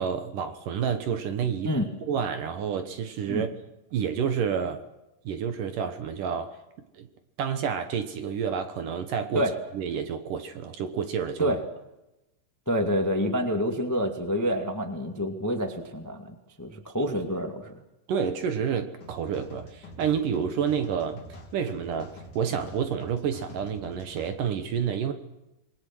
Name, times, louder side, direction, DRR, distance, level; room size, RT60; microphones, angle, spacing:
voice 1, 0.0-1.7 2.0-3.5 3.9-4.8 5.2-6.6 6.9-7.1 7.4-11.6 18.1-21.2 21.5-25.1, right 7 dB, 65° right, 8 dB, 2.4 m, -29 dB
voice 2, 12.7-17.7, equal, 15° left, 4 dB, 0.6 m, -28 dB
sound 1, 19.0-24.3, left 1 dB, 50° left, 4.5 m, -46 dB
28.0 x 21.5 x 6.2 m, 0.94 s
omnidirectional pair, 4.9 m